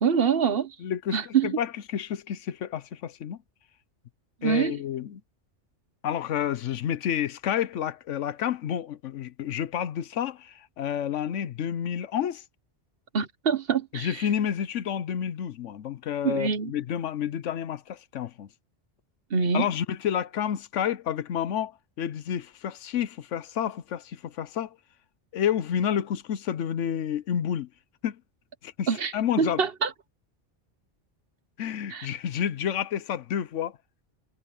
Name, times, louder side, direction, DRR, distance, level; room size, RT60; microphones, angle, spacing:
voice 1, 0.0-0.7 1.1-1.6 4.4-4.8 13.1-14.3 16.2-16.7 19.3-19.7 28.9-29.9 31.9-32.1, right 6 dB, 55° right, 1.2 m, -25 dB
voice 2, 0.8-3.4 4.4-5.2 6.0-12.4 13.9-18.5 19.5-21.7 22.0-24.8 25.3-27.7 28.0-28.2 28.6-28.9 29.1-29.6 31.6-33.8, left 9 dB, 85° left, 1.1 m, -30 dB
omnidirectional pair, 1.2 m